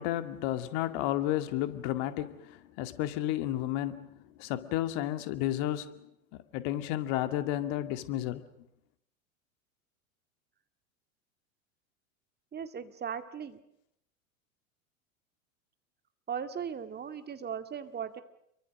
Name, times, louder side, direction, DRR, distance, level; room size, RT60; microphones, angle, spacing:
voice 1, 0.0-6.1 6.3-8.4, left 13 dB, 50° left, 10 dB, 2.2 m, -32 dB
voice 2, 12.5-13.6 16.3-18.2, right 7 dB, 25° right, 9 dB, 2.1 m, -38 dB
28.5 x 23.5 x 6.5 m, 0.78 s
hypercardioid pair, 90°, 43 cm